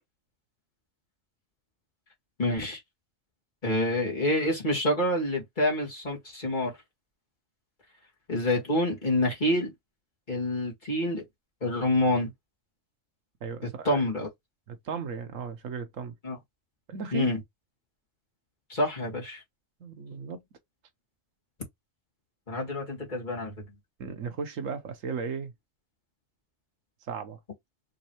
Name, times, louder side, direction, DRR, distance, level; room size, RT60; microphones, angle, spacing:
voice 1, 2.4-2.8 3.6-6.7 8.3-9.7 10.3-11.2 11.6-12.3 13.8-14.3 16.2-16.4 17.1-17.4 18.7-19.4 22.5-23.5, left 1 dB, 35° left, 1.9 m, -27 dB
voice 2, 13.4-14.0 14.7-16.1 16.9-17.3 19.8-20.4 24.0-25.5 27.1-27.4, right 5 dB, 80° right, 1.3 m, -36 dB
5.3 x 3.2 x 3.0 m
omnidirectional pair, 1.4 m